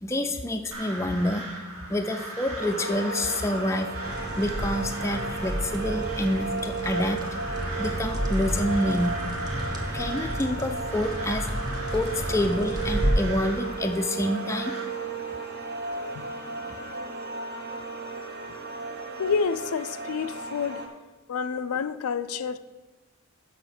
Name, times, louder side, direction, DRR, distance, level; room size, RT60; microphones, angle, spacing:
voice 1, 0.0-1.5 1.9-4.0 4.4-7.2 7.8-9.6 9.9-11.5 11.9-14.7, left 1 dB, 15° left, 0.4 m, -27 dB
Crow, 0.7-14.9, right 2 dB, 70° right, 1.8 m, -39 dB
sound 1, 2.6-20.9, right 4 dB, 45° right, 0.8 m, -35 dB
sound 2, 4.0-13.1, equal, 20° right, 0.9 m, -32 dB
voice 2, 19.2-20.8 21.3-22.6, left 6 dB, 85° left, 0.4 m, -28 dB
7.0 x 5.8 x 6.0 m
head